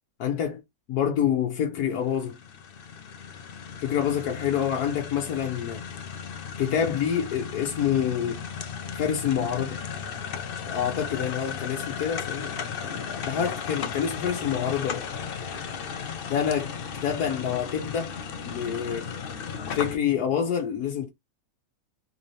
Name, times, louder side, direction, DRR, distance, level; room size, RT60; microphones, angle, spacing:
voice 1, 0.2-0.6 0.9-2.4 3.8-5.8 6.6-8.4 8.9-9.8 10.7-12.6 12.8-15.0 16.3-16.7 17.0-18.1 18.5-19.0 19.7-21.1, left 8 dB, 85° left, 1.3 m, -27 dB
sound 1, 2.0-20.0, left 6 dB, 65° left, 0.5 m, -35 dB
3.7 x 2.7 x 3.1 m
omnidirectional pair, 1.6 m